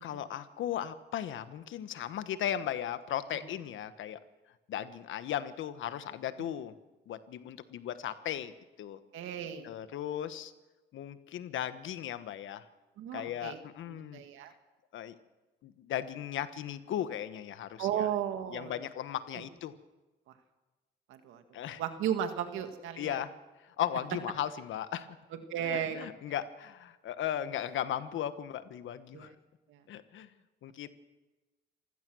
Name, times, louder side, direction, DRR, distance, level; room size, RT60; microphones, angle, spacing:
voice 1, 0.0-4.2 4.7-6.7 7.1-9.0 9.6-10.5 10.9-12.6 13.1-14.2 14.9-15.1 15.6-18.1 18.5-19.7 21.5-21.8 23.0-23.3 23.8-25.1 25.6-29.3 29.9-30.3 30.6-30.9, left 10 dB, 75° left, 12 dB, 1.2 m, -36 dB
voice 2, 9.1-9.7 13.0-13.6 13.9-14.5 17.8-18.8 19.3-19.4 20.3-20.4 21.1-21.4 21.8-23.2 25.3-26.3 29.1-29.4 29.7-29.8, right 9 dB, 90° right, 7 dB, 2.0 m, -35 dB
26.5 x 16.0 x 6.3 m, 1.2 s
cardioid pair, 90°, 20 cm